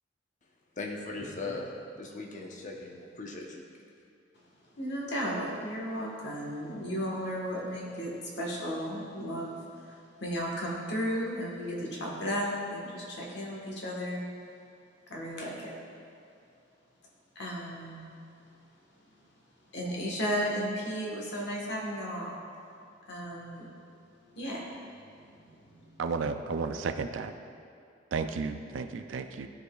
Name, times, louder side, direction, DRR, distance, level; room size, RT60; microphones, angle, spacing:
voice 1, 0.8-3.6, left 2 dB, 40° left, 0 dB, 0.8 m, -39 dB
voice 2, 4.7-14.2 15.1-15.7 17.3-18.0 19.7-22.4 23.1-23.7 24.3-26.0, equal, 65° left, -3 dB, 1.4 m, -35 dB
voice 3, 26.0-27.3 28.1-29.5, right 4 dB, 90° right, 8 dB, 0.4 m, -33 dB
12.5 x 4.9 x 2.4 m, 2.5 s
head